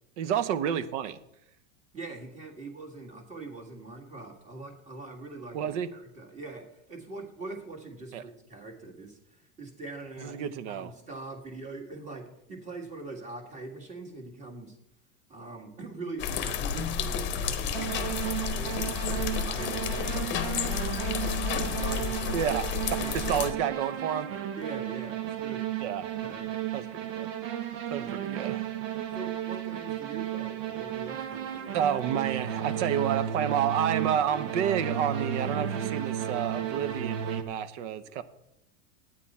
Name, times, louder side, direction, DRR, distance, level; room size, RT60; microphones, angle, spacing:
voice 1, 0.2-1.2 5.5-5.9 8.1-8.2 10.2-10.9 22.3-22.7 23.1-24.4 25.8-26.1 26.7-27.3 27.9-28.7 28.9-29.1 31.7-38.2, right 9 dB, 65° right, 14 dB, 0.9 m, -30 dB
voice 2, 1.9-5.6 5.9-14.8 15.3-21.0 21.5-22.5 22.9-23.5 24.6-25.7 26.2-26.7 29.1-31.9, right 3 dB, 20° right, 2 dB, 1.8 m, -42 dB
Regn droppande, 16.2-23.5, left 7 dB, 30° left, 0.9 m, -31 dB
sound 1, 17.7-37.4, right 10 dB, 85° right, 1.3 m, -33 dB
11.5 x 9.2 x 4.2 m, 0.81 s
supercardioid pair, 160°, 39 cm